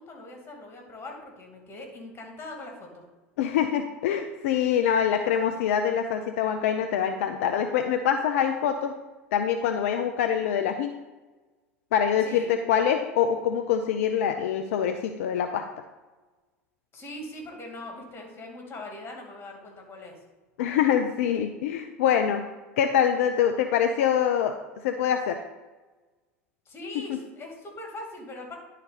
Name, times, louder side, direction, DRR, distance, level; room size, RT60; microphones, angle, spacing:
voice 1, 0.0-3.1 12.2-12.5 16.9-20.2 23.5-23.7 26.7-28.6, left 1 dB, 30° left, 1 dB, 2.3 m, -41 dB
voice 2, 3.4-9.0 9.3-11.0 11.9-15.7 20.6-22.4 22.8-24.6 24.8-25.4 27.1-27.2, left 8 dB, 70° left, 6 dB, 0.5 m, -25 dB
10.5 x 4.2 x 4.1 m, 1.2 s
hypercardioid pair, 85°, 8 cm